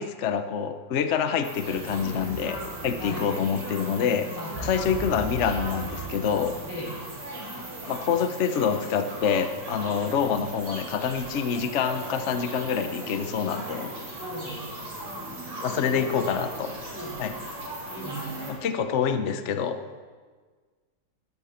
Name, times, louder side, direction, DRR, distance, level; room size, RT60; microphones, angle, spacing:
voice 1, 0.0-4.3 4.6-6.6 7.9-13.9 15.6-16.7 17.2-17.3 18.5-19.8, left 7 dB, 70° left, 8 dB, 0.6 m, -26 dB
sound 1, 1.4-18.5, right 1 dB, 75° right, 5.7 m, -38 dB
sound 2, 1.8-7.0, equal, 15° left, 2.9 m, -39 dB
voice 2, 3.0-3.3 4.4-4.6 4.8-5.2 6.7-7.0 14.2-14.8 15.7-16.1 16.9-17.4 17.9-18.6, equal, 50° left, -1 dB, 3.4 m, -38 dB
17.0 x 13.0 x 5.8 m, 1.5 s
omnidirectional pair, 2.4 m